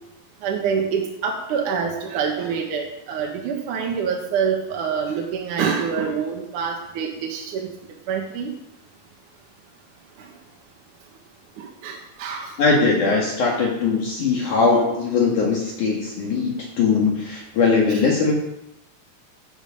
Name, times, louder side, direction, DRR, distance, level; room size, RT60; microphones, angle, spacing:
voice 1, 0.4-7.7 8.1-8.5 11.6-12.5, right 6 dB, 60° right, 1 dB, 2.5 m, -26 dB
voice 2, 12.6-18.3, left 4 dB, 55° left, -2 dB, 3.0 m, -20 dB
16.0 x 9.5 x 5.2 m, 0.87 s
omnidirectional pair, 4.5 m